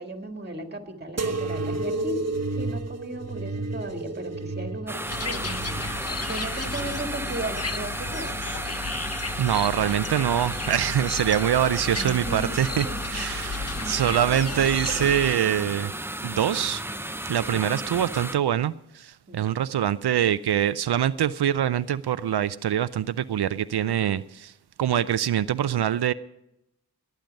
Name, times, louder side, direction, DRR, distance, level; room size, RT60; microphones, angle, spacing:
voice 1, 0.0-2.2 2.6-5.9 6.3-8.4 12.0-13.0 13.7-14.1 14.3-14.5 14.9-15.1 19.3-19.5, right 1 dB, 25° right, 1.9 m, -36 dB
sound 1, 1.2-8.4 8.9-9.7 10.4-11.0 11.9-12.1, right 3 dB, 40° right, 1.1 m, -33 dB
sound 2, 4.9-18.4, right 1 dB, 5° right, 0.5 m, -33 dB
sound 3, 5.1-15.4, left 4 dB, 40° left, 0.8 m, -34 dB
voice 2, 9.4-15.9 16.2-16.8 17.3-24.5 24.8-26.1, right 10 dB, 80° right, 0.5 m, -24 dB
21.0 x 9.1 x 5.3 m
wide cardioid pair, 70°, 39 cm